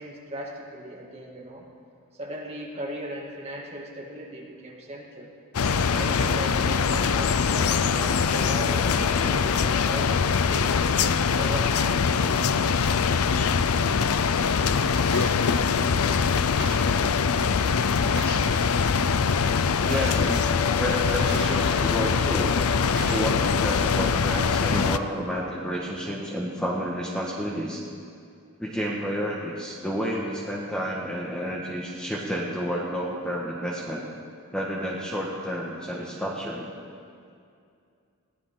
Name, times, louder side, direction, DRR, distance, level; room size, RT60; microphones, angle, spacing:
voice 1, 0.0-1.6 2.2-5.3 5.9-10.7 11.2-12.3, equal, 30° right, -2 dB, 2.3 m, -37 dB
sound 1, 5.5-25.0, left 5 dB, 75° left, 0.5 m, -23 dB
Gunshot gunfire, 15.1-15.5 16.6-17.0 18.2-18.5 19.9-20.3 21.3-21.8 23.0-23.4, right 3 dB, 50° right, 2.1 m, -37 dB
voice 2, 19.8-20.5 20.8-22.7 23.1-27.8 28.6-34.0 34.5-36.7, equal, 5° left, -3 dB, 1.5 m, -30 dB
22.0 x 16.5 x 3.8 m, 2.4 s
head